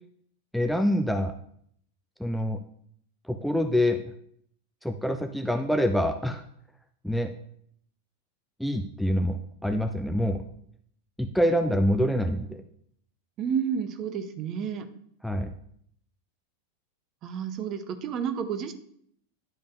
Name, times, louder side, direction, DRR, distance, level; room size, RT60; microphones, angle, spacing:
voice 1, 0.5-1.3 2.2-2.6 3.3-4.1 4.8-6.4 7.0-7.3 8.6-10.4 11.2-12.6 15.2-15.5, equal, ahead, 6 dB, 0.4 m, -26 dB
voice 2, 13.4-14.9 17.2-18.7, right 7 dB, 35° right, 10 dB, 0.8 m, -30 dB
10.5 x 5.1 x 2.6 m, 0.67 s
figure-of-eight pair, 90°, 0 cm